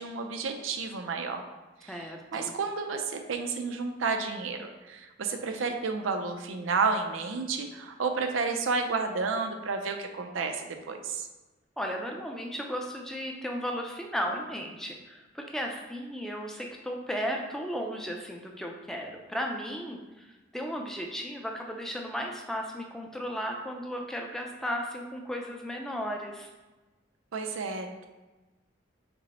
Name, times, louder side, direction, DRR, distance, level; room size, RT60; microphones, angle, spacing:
voice 1, 0.0-1.4 1.8-11.3 27.3-28.1, right 4 dB, 90° right, 5 dB, 0.5 m, -31 dB
voice 2, 1.9-2.6 11.8-20.3 20.5-26.5, equal, ahead, 1 dB, 0.4 m, -35 dB
5.2 x 2.1 x 4.1 m, 1.2 s
head